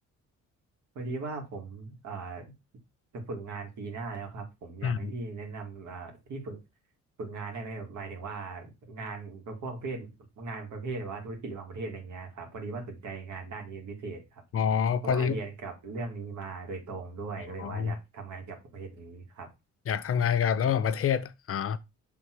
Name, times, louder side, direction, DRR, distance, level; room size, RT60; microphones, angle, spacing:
voice 1, 0.9-2.5 3.1-6.6 7.2-10.1 10.4-14.4 15.0-19.5, right 3 dB, 75° right, 2.3 m, -39 dB
voice 2, 14.5-15.4 17.6-18.0 19.9-21.8, left 7 dB, 50° left, 0.6 m, -27 dB
6.4 x 3.5 x 4.7 m
cardioid pair, 90°, 30 cm